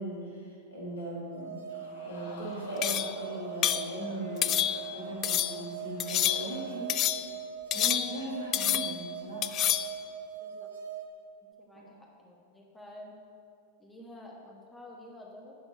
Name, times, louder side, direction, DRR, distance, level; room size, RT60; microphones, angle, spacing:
voice 1, 0.0-1.6 2.0-6.9 7.7-9.5 11.7-11.8, right 1 dB, 75° left, -4 dB, 2.7 m, -39 dB
sound 1, 1.3-11.0, right 7 dB, 65° right, 1.2 m, -41 dB
Crowd, 1.7-7.1 7.6-7.7, left 3 dB, 55° left, 1.1 m, -52 dB
sound 2, 2.8-3.2 3.6-3.9 4.4-4.9 5.2-5.6 6.0-6.6 6.9-7.3 7.7-8.3 8.5-9.1 9.4-10.0, left 12 dB, 35° left, 0.3 m, -29 dB
voice 2, 10.4-10.7 11.6-13.1 13.8-15.5, left 1 dB, 10° left, -2 dB, 1.3 m, -49 dB
11.0 x 4.4 x 7.6 m, 2.4 s
figure-of-eight pair, 90°, 0 cm